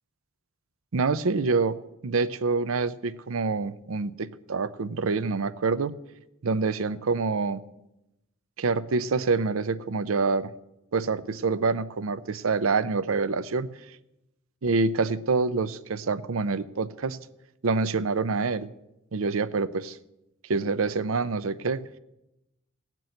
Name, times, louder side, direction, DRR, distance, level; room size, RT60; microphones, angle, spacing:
voice 1, 0.9-1.8 2.0-5.9 6.4-7.6 8.6-10.5 10.9-13.7 14.6-17.2 17.6-18.7 19.1-20.0 20.5-21.8, right 4 dB, 80° right, 15 dB, 0.6 m, -26 dB
17.0 x 6.1 x 7.8 m, 0.91 s
head